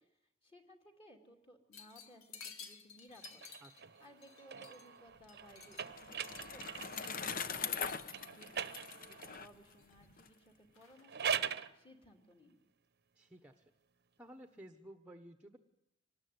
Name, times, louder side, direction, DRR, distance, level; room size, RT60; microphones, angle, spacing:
voice 1, 0.0-3.4 4.0-8.7 9.0-12.6, equal, 25° left, 1 dB, 2.9 m, -61 dB
sound 1, 1.7-5.0 5.3-7.4 7.9-8.5 8.9-9.4 9.8-10.3 10.7-11.3, left 6 dB, 75° left, 2.3 m, -55 dB
sound 2, 3.2-7.2 8.1-9.5 10.9-11.7, right 7 dB, 50° right, 0.9 m, -41 dB
Bicycle, 5.2-10.3, left 6 dB, 40° left, 1.0 m, -42 dB
voice 2, 13.1-13.6 14.2-15.6, right 1 dB, 5° right, 7 dB, 1.2 m, -54 dB
24.5 x 19.5 x 9.6 m, 0.81 s
head